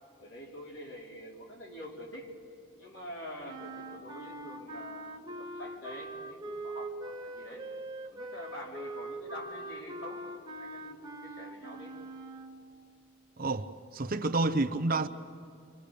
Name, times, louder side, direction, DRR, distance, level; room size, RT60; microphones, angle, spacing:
voice 1, 0.2-2.3 2.8-7.7 8.1-12.0, equal, 65° left, 4.9 m, -46 dB
sound 1, 3.5-12.6, right 2 dB, 20° right, 1.7 m, -42 dB
voice 2, 13.4-15.1, right 2 dB, 45° right, 0.9 m, -29 dB
28.5 x 25.5 x 6.9 m
head